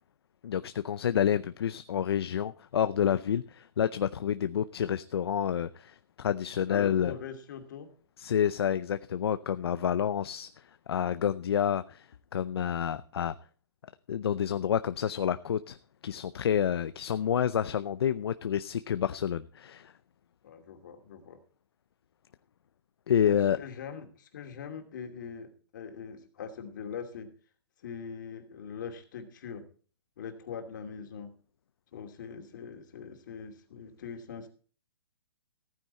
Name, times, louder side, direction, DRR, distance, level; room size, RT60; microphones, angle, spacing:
voice 1, 0.4-7.1 8.2-13.3 14.1-15.8 16.0-19.9 23.1-23.6, left 9 dB, 70° left, 12 dB, 0.6 m, -29 dB
voice 2, 6.7-7.9 20.4-21.4 23.3-27.3 27.8-29.6 30.2-31.3 31.9-34.5, left 6 dB, 45° left, 4 dB, 2.6 m, -42 dB
15.0 x 9.5 x 4.3 m, 0.42 s
hypercardioid pair, 165°, 14 cm